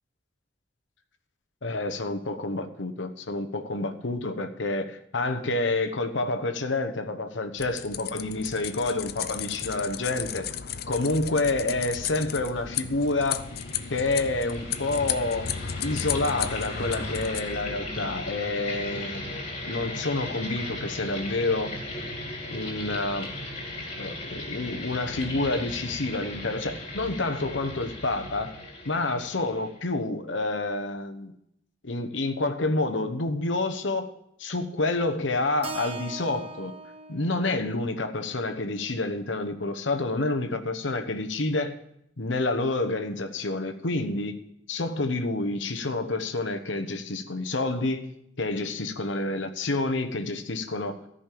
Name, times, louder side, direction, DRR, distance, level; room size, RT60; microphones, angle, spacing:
voice 1, 1.6-10.5 10.9-13.5 13.9-15.5 15.8-21.7 22.5-23.3 24.0-28.5 28.9-31.3 31.8-34.1 34.4-36.7 37.1-41.8 42.2-44.4 44.7-48.1 48.4-51.0, left 2 dB, 75° left, 1.0 m, -28 dB
sound 1, 7.6-17.4, left 9 dB, 55° left, 0.5 m, -34 dB
sound 2, 13.1-29.8, left 1 dB, 35° left, 2.7 m, -37 dB
Keyboard (musical), 35.6-39.9, right 3 dB, 30° right, 0.7 m, -42 dB
13.5 x 5.5 x 8.4 m
head